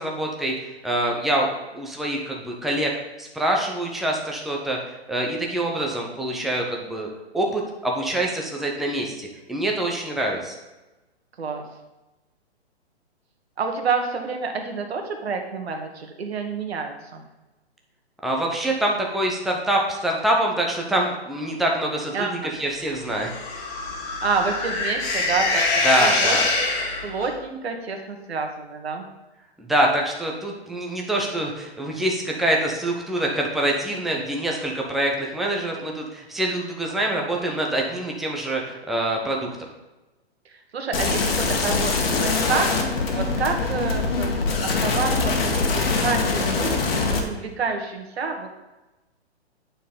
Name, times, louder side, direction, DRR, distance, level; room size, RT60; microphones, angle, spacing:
voice 1, 0.0-2.9 3.2-7.1 7.3-10.5 18.2-23.3 25.8-26.5 29.6-39.7, right 1 dB, ahead, -1 dB, 0.6 m, -25 dB
voice 2, 13.6-17.2 22.1-22.5 24.2-26.7 27.0-29.1 40.7-42.7 43.1-48.5, right 4 dB, 70° right, 4 dB, 1.7 m, -28 dB
sound 1, 23.0-27.3, left 2 dB, 30° left, 1.7 m, -24 dB
sound 2, 40.9-47.2, left 4 dB, 60° left, 1.8 m, -23 dB
9.0 x 4.5 x 5.3 m, 1.1 s
hypercardioid pair, 140°, 33 cm